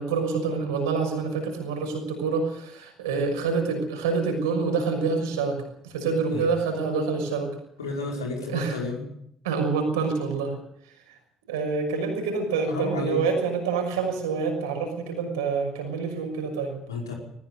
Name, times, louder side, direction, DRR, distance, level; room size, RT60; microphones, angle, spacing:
voice 1, 0.0-7.5 8.5-8.8 9.4-10.6 11.5-16.8, right 4 dB, 75° right, 4 dB, 6.2 m, -27 dB
voice 2, 7.8-9.0 12.7-13.2 16.9-17.1, left 3 dB, 80° left, 0 dB, 5.1 m, -31 dB
20.0 x 20.0 x 6.9 m, 0.71 s
figure-of-eight pair, 45°, 2 cm